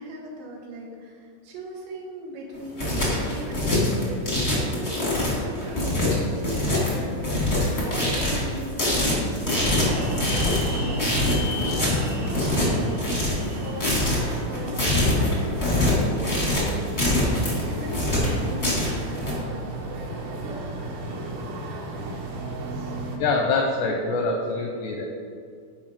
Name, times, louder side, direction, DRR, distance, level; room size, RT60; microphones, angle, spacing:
voice 1, 0.0-7.5 7.8-9.2 9.6-16.6 17.1-20.1, right 1 dB, 85° right, -3 dB, 4.1 m, -38 dB
sound 1, 2.5-19.3, left 1 dB, 65° left, 0.6 m, -24 dB
sound 2, 9.5-23.2, right 1 dB, 70° right, 2.4 m, -32 dB
voice 2, 23.2-25.1, left 3 dB, 80° left, 1 dB, 2.4 m, -24 dB
14.0 x 5.2 x 3.6 m, 2.1 s
omnidirectional pair, 5.6 m